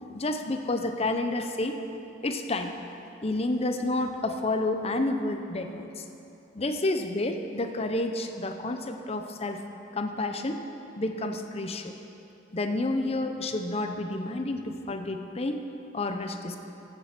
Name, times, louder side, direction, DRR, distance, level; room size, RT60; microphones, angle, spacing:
voice 1, 0.1-1.8 2.2-2.7 3.2-6.0 6.5-9.6 9.9-10.6 11.0-11.9 12.5-15.6 15.9-16.6, left 2 dB, 35° left, 6 dB, 0.7 m, -30 dB
15.0 x 6.8 x 6.0 m, 2.9 s
head